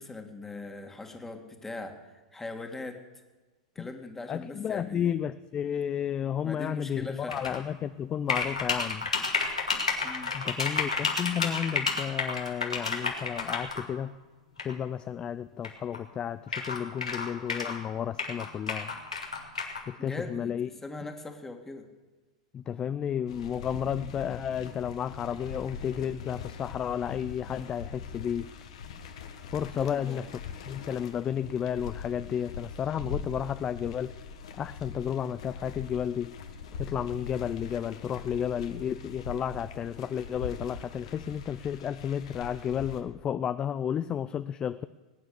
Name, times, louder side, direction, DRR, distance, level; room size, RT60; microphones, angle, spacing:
voice 1, 0.0-3.0 3.8-5.1 6.4-7.5 10.0-10.3 20.0-20.6 20.8-21.9 29.7-30.3, left 2 dB, 10° left, 4 dB, 2.1 m, -40 dB
voice 2, 4.3-9.1 10.3-14.2 14.6-19.0 19.9-20.7 22.5-28.5 29.5-30.3 30.6-34.1 34.6-36.4 36.8-44.9, left 9 dB, 25° left, 13 dB, 0.5 m, -32 dB
sound 1, 7.3-7.6 8.3-13.8 14.6-14.7 15.6-15.7 15.9-16.0 16.5-17.8 18.2-19.8, left 4 dB, 90° left, 2.2 m, -30 dB
sound 2, 23.3-43.0, left 5 dB, 65° left, 1.6 m, -42 dB
20.5 x 9.3 x 6.7 m, 1.2 s
hypercardioid pair, 95°, 3 cm